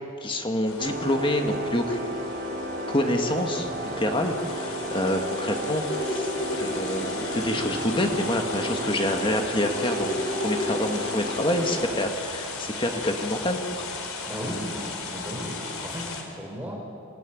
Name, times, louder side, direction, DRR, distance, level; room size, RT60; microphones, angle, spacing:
voice 1, 0.2-2.1 2.9-13.9, left 1 dB, 25° left, 4 dB, 1.6 m, -27 dB
sound 1, 0.7-16.2, left 4 dB, 75° left, 3.6 m, -36 dB
sound 2, 0.8-12.0, right 1 dB, 50° right, 2.7 m, -34 dB
sound 3, 2.9-10.9, equal, 45° left, 2.5 m, -36 dB
voice 2, 14.3-16.0 16.4-16.8, equal, 10° right, -2 dB, 4.6 m, -35 dB
27.5 x 15.5 x 9.2 m, 2.6 s
head